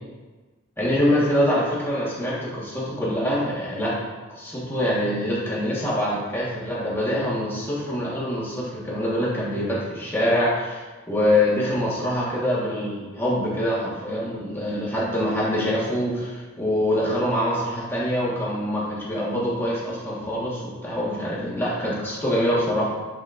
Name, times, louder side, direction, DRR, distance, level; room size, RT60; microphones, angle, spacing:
voice 1, 0.8-3.9 4.3-22.9, left 1 dB, 10° left, -7 dB, 1.4 m, -24 dB
9.1 x 5.0 x 2.6 m, 1.3 s
head